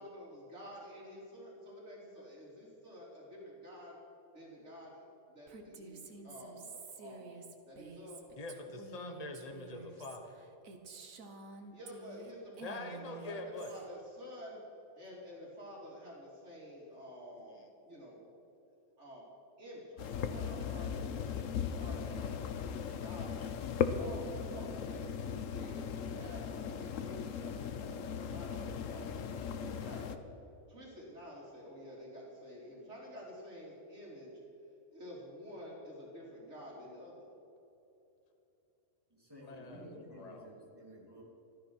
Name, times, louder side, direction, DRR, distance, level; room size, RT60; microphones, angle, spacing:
voice 1, 0.0-3.9 4.3-6.6 7.0-7.3 7.7-8.2 11.7-14.6 15.0-18.2 19.0-19.2 19.6-23.3 23.9-25.0 25.5-30.2 30.7-34.3 34.9-37.3, equal, 60° right, -4 dB, 3.4 m, -50 dB
Female speech woman speaking, 5.5-12.3 12.6-13.8, right 4 dB, 90° right, 1.6 m, -50 dB
voice 2, 8.4-10.4 12.6-13.7 39.4-40.5, left 2 dB, 30° left, 5 dB, 1.4 m, -44 dB
sound 1, 20.0-30.2, left 7 dB, 75° left, 1.2 m, -38 dB
voice 3, 39.1-41.2, equal, 15° right, -3 dB, 3.1 m, -53 dB
14.0 x 12.5 x 6.2 m, 2.9 s
omnidirectional pair, 1.4 m